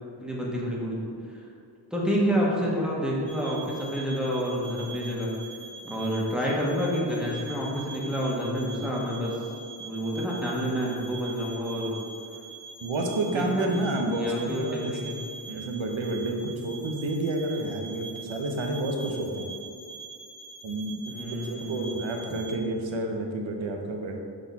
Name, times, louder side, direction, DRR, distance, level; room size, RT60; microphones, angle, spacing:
voice 1, 0.2-1.0 1.3-1.4 1.9-5.3 5.8-9.4 9.8-11.9 13.2-13.8 14.2-15.2 15.5-15.8 21.1-22.0, equal, ahead, -5 dB, 1.4 m, -29 dB
sound 1, 3.3-22.5, right 4 dB, 80° left, 1.2 m, -43 dB
voice 2, 12.8-15.2 15.5-19.5 20.6-24.2, right 1 dB, 85° right, 2 dB, 0.8 m, -30 dB
6.2 x 4.0 x 4.1 m, 2.4 s
wide cardioid pair, 65°, 45 cm